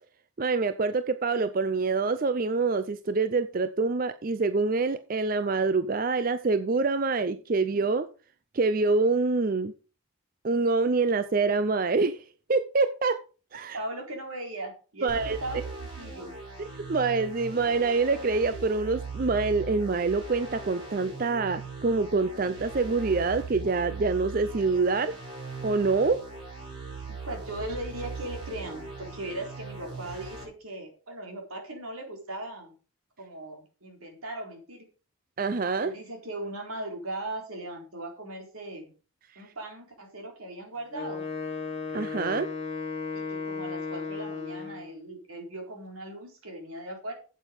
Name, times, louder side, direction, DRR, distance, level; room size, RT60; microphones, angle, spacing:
voice 1, 0.4-8.1 8.5-9.7 10.4-13.2 13.5-13.8 15.0-15.4 16.6-25.2 25.6-26.2 35.4-35.9 41.9-42.5, right 4 dB, 40° right, 12 dB, 0.5 m, -26 dB
voice 2, 13.7-15.1 15.4-16.3 27.1-32.7 33.2-34.9 35.8-38.9 39.4-41.2 43.1-47.1, right 1 dB, 85° right, 2 dB, 4.1 m, -38 dB
sound 1, 15.1-30.4, right 4 dB, 25° right, 5.8 m, -40 dB
Wind instrument woodwind instrument, 40.9-44.9, left 4 dB, 25° left, 2.3 m, -35 dB
8.9 x 8.3 x 5.2 m, 0.35 s
head